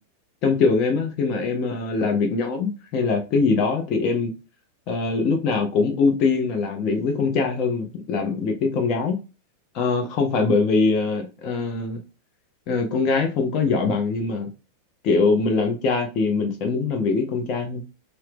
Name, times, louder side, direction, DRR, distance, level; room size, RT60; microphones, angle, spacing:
voice 1, 0.4-4.3 4.9-9.2 9.7-12.0 12.7-14.5 15.0-17.8, left 4 dB, 40° left, 0.6 m, -22 dB
2.7 x 2.0 x 3.3 m
figure-of-eight pair, 90°, 0 cm